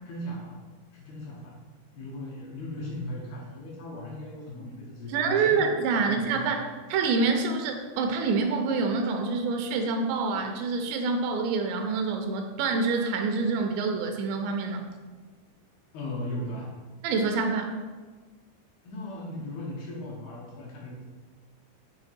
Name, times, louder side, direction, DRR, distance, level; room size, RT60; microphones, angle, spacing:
voice 1, 0.1-0.6 0.9-1.6 1.9-6.5 15.9-16.7 18.8-21.1, left 1 dB, 70° left, -3 dB, 2.7 m, -38 dB
voice 2, 5.1-6.6 6.9-14.8 17.0-17.7, right 4 dB, 85° right, 4 dB, 2.8 m, -26 dB
7.9 x 3.5 x 4.3 m, 1.4 s
omnidirectional pair, 5.1 m